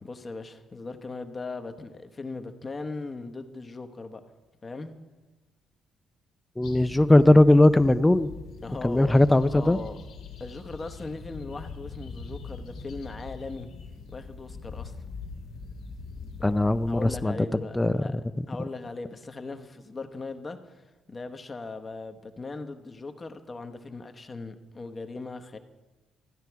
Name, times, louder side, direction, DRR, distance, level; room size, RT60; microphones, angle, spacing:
voice 1, 0.0-4.2 4.6-4.9 8.6-10.0 10.4-13.7 14.1-14.9 16.9-18.2 18.5-25.6, left 3 dB, 30° left, 1.0 m, -39 dB
sound 1, 6.6-17.3, left 4 dB, 85° left, 1.6 m, -42 dB
voice 2, 6.6-8.3 8.8-9.8 16.4-17.3 17.7-18.0, left 1 dB, 15° left, 0.5 m, -19 dB
14.0 x 9.6 x 4.6 m
cardioid pair, 90°, 0 cm